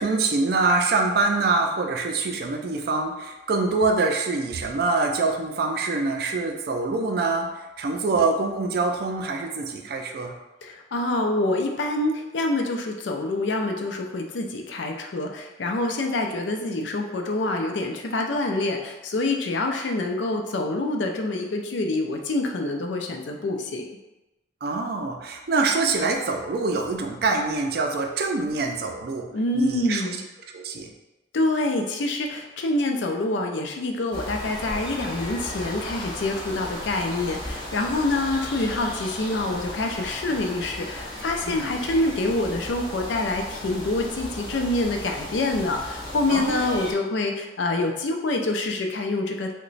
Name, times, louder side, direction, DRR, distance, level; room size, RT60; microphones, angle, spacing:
voice 1, 0.0-7.5 7.8-10.3 24.6-29.3 29.5-30.0 30.5-30.9 41.4-41.7 46.3-46.8, right 3 dB, 55° right, 3 dB, 0.4 m, -25 dB
voice 2, 10.6-23.9 29.3-30.2 31.3-49.5, left 2 dB, 75° left, 3 dB, 0.4 m, -26 dB
sound 1, 34.1-46.9, left 1 dB, 25° left, 0.6 m, -36 dB
2.9 x 2.2 x 3.9 m, 1.0 s
head